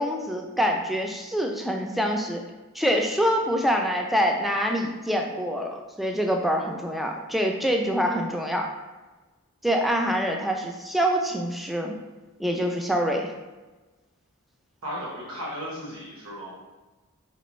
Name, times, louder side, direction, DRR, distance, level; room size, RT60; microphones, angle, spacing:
voice 1, 0.0-2.4 2.7-8.7 9.6-11.9 12.4-13.3, equal, ahead, 2 dB, 0.3 m, -25 dB
voice 2, 14.8-16.6, equal, 85° right, -6 dB, 1.1 m, -35 dB
4.9 x 3.3 x 3.0 m, 1.2 s
head